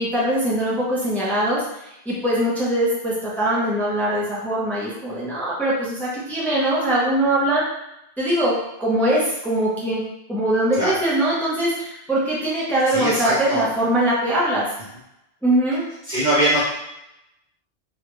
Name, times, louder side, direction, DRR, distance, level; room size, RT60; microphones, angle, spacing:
voice 1, 0.0-1.6 2.1-7.6 8.2-8.5 8.8-10.0 10.3-14.7 15.4-15.8, right 1 dB, ahead, -7 dB, 0.6 m, -22 dB
voice 2, 12.9-13.7 16.0-16.7, right 1 dB, 55° right, -6 dB, 0.6 m, -21 dB
3.0 x 2.4 x 3.0 m, 0.85 s
omnidirectional pair, 1.1 m